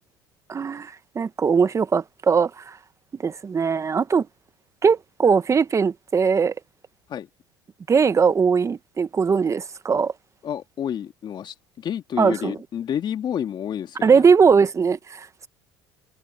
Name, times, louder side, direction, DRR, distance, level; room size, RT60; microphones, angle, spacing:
voice 1, 0.5-2.8 3.2-4.3 4.8-6.5 7.9-10.1 12.2-12.5 14.0-15.5, right 5 dB, 30° right, 1.2 m, -20 dB
voice 2, 10.4-14.2, left 9 dB, 45° left, 2.2 m, -30 dB
hypercardioid pair, 85°, 11 cm